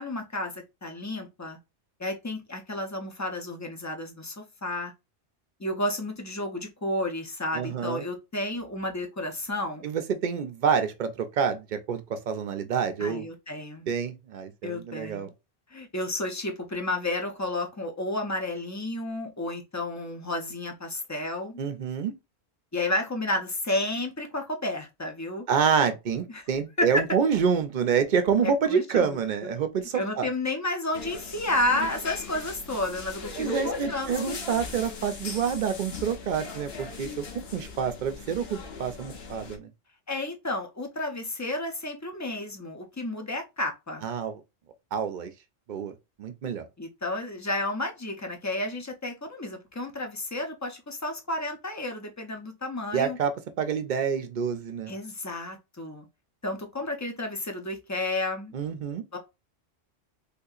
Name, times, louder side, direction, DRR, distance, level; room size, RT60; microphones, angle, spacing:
voice 1, 0.0-1.6 2.0-4.9 5.6-9.8 13.0-13.9 14.6-15.3 15.7-21.6 22.7-25.5 26.3-26.5 26.8-27.0 28.4-29.5 29.9-34.6 40.1-44.0 46.8-53.2 54.9-56.1 56.4-58.5 59.1-59.2, left 1 dB, 25° left, 0.4 m, -31 dB
voice 2, 7.5-8.0 9.8-13.3 13.9-15.3 21.6-22.1 25.5-30.3 33.4-37.3 37.5-39.7 44.0-44.4 44.9-45.3 45.7-45.9 46.2-46.7 52.9-54.9 58.5-59.0, right 7 dB, 55° right, 0.5 m, -27 dB
sound 1, 30.9-39.6, left 4 dB, 65° left, 1.0 m, -39 dB
3.6 x 2.7 x 2.3 m
omnidirectional pair, 1.1 m